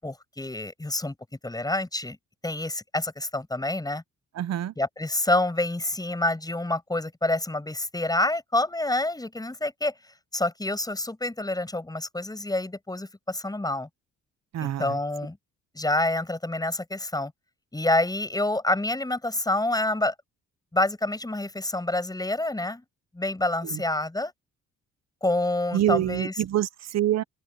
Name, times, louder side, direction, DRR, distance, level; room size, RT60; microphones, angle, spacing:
voice 1, 0.0-1.1 1.4-2.2 2.4-4.0 4.8-9.9 10.3-13.9 14.6-15.4 15.7-17.3 17.7-20.1 20.7-22.8 23.1-24.3 25.2-26.3, left 2 dB, 10° left, 6.9 m, -27 dB
voice 2, 4.3-4.7 14.5-15.0 23.6-23.8 25.7-27.2, right 12 dB, 60° right, 0.9 m, -26 dB
open air
cardioid pair, 90°, 30 cm